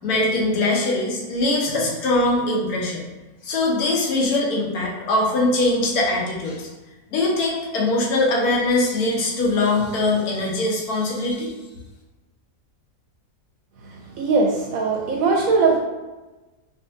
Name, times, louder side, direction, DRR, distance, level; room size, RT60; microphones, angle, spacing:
voice 1, 0.0-3.0 3.4-6.7 7.1-11.5, left 2 dB, 70° left, -2 dB, 1.2 m, -22 dB
voice 2, 14.2-15.8, right 4 dB, 70° right, 0 dB, 0.9 m, -20 dB
4.7 x 2.5 x 2.6 m, 1.1 s
omnidirectional pair, 1.7 m